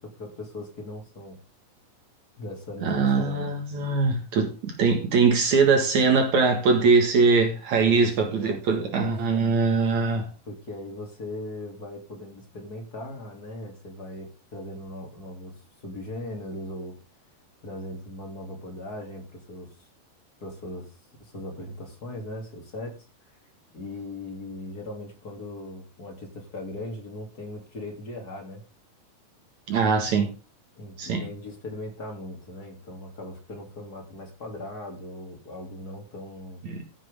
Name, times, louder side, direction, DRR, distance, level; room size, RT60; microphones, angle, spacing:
voice 1, 0.0-1.4 2.4-3.6 7.8-9.1 10.5-15.5 15.8-16.9 17.6-19.7 20.4-20.9 21.3-22.9 23.7-28.6 30.8-36.6, left 1 dB, 25° left, 3.0 m, -38 dB
voice 2, 2.8-10.3 29.7-30.3 31.0-31.2 36.6-36.8, right 4 dB, 60° right, 2.8 m, -22 dB
15.0 x 7.8 x 3.7 m
omnidirectional pair, 4.2 m